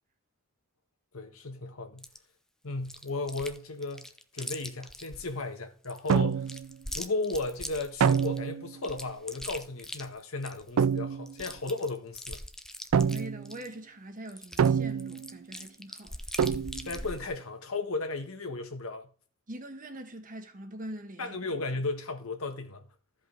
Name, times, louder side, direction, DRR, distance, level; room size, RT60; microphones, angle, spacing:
voice 1, 1.1-2.1 2.6-6.5 6.9-12.4 16.8-19.1 21.2-22.9, left 3 dB, 85° left, 1.6 m, -35 dB
Chewing mastication, 2.0-2.2 2.8-3.6 3.8-5.3 5.8-8.4 8.8-10.7 11.0-11.1 11.3-13.7 14.3-17.3, left 1 dB, 5° left, 0.6 m, -41 dB
sound 1, 6.1-6.7 8.0-8.7 10.8-11.3 12.9-13.5 14.6-15.4 16.4-17.0, right 7 dB, 80° right, 0.4 m, -26 dB
voice 2, 13.1-16.2 19.5-21.4, right 1 dB, 40° right, 1.4 m, -43 dB
14.0 x 5.4 x 4.0 m
head